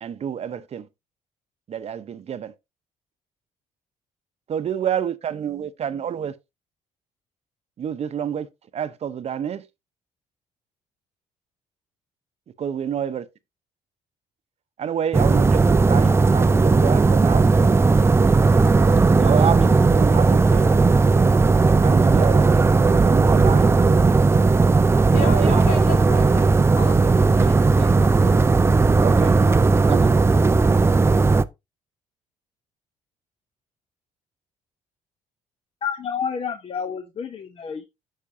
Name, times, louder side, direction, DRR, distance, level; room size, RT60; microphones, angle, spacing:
voice 1, 0.0-0.8 1.7-2.5 4.5-6.3 7.8-8.5 8.7-9.6 12.6-13.2 14.8-17.5 19.1-20.7 21.8-22.5 22.9-23.7 25.1-25.6 26.2-26.3 29.0-29.3 29.9-30.2, right 8 dB, 50° right, 0.7 m, -28 dB
sound 1, 15.1-31.4, right 3 dB, 20° right, 0.4 m, -16 dB
voice 2, 25.1-28.4 29.4-29.6, left 4 dB, 70° left, 2.4 m, -35 dB
voice 3, 35.8-37.8, left 7 dB, 45° left, 0.8 m, -29 dB
8.4 x 6.5 x 2.6 m
cardioid pair, 80°, 14 cm